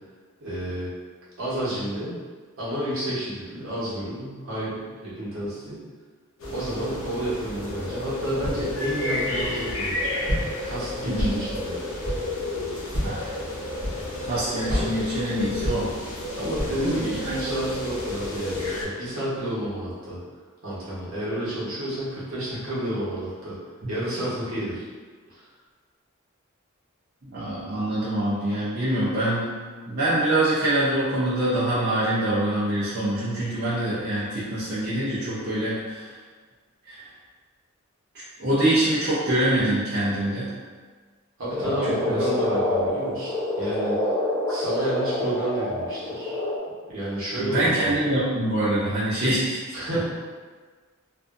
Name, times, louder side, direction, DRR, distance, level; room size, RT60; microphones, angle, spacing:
voice 1, 0.4-0.9 1.4-2.1 2.6-5.8 6.5-10.0 10.6-11.7 16.3-20.2 20.6-23.6 23.9-24.9 25.3-25.4 41.4-44.0 44.5-46.4 46.9-48.2 49.7-50.0, right 1 dB, 65° right, -9 dB, 1.0 m, -30 dB
sound 1, 6.4-18.8, left 1 dB, 65° left, 0.6 m, -31 dB
Walk footsteps, 8.4-8.9 9.4-9.9 10.3-10.7 11.1-11.7 12.0-12.4 12.9-13.3 13.8-14.3 14.7-16.2 16.5-16.9, equal, 35° left, 1.0 m, -30 dB
voice 2, 11.0-11.4 13.0-13.2 14.2-15.9 16.8-17.1 27.3-29.6 29.9-36.1 36.9-37.0 38.4-40.5 41.6-42.2 47.3-49.6, right 1 dB, 45° right, -12 dB, 0.6 m, -25 dB
Frog, 41.5-46.6, left 1 dB, 10° left, 0.6 m, -27 dB
2.6 x 2.4 x 2.4 m, 1.5 s
head